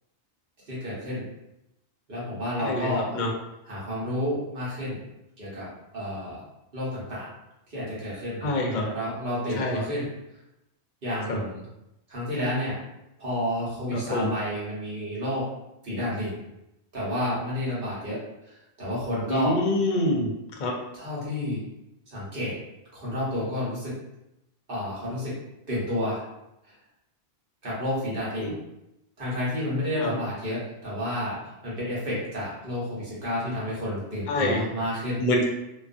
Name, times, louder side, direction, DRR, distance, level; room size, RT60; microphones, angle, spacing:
voice 1, 0.7-1.3 2.1-3.2 3.7-5.0 5.4-5.7 5.9-6.4 6.7-7.3 7.7-10.1 11.0-11.6 12.1-12.8 13.2-15.5 15.8-16.4 16.9-18.2 18.4-19.6 20.9-21.6 22.1-22.6 22.9-24.0 24.7-25.4 25.7-26.2 27.6-28.6 29.2-35.2, left 1 dB, 55° right, -7 dB, 1.1 m, -30 dB
voice 2, 2.6-3.3 8.4-8.8 9.6-9.8 11.3-11.4 13.9-14.3 19.3-20.3 20.6-20.7 28.4-28.5 30.0-30.1 34.3-34.6 35.2-35.4, left 1 dB, 55° left, 0 dB, 0.6 m, -25 dB
2.4 x 2.3 x 2.4 m, 0.88 s
omnidirectional pair, 1.2 m